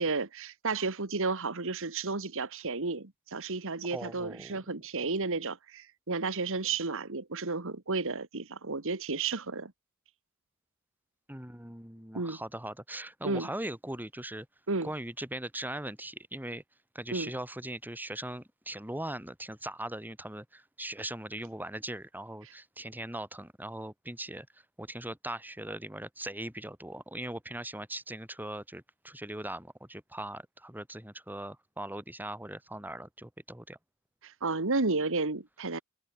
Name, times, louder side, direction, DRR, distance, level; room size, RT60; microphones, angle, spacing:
voice 1, 0.0-9.7 12.1-12.4 13.2-13.5 14.7-14.9 17.1-17.3 34.2-35.8, right 3 dB, 65° right, 1.9 m, -32 dB
voice 2, 3.9-4.6 11.3-14.5 14.8-16.6 16.9-33.8, right 1 dB, 10° right, 5.7 m, -40 dB
head